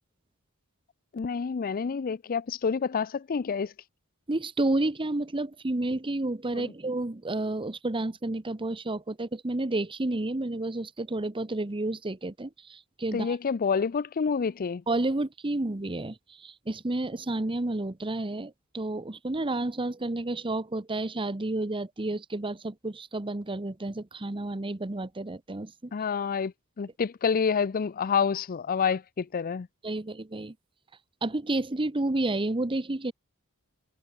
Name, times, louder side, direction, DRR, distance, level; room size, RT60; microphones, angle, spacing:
voice 1, 1.1-3.7 6.5-6.7 13.1-14.8 25.9-29.7, left 6 dB, 40° left, 0.4 m, -28 dB
voice 2, 4.3-13.4 14.9-25.9 29.8-30.5 31.2-33.1, right 2 dB, 25° right, 0.9 m, -30 dB
head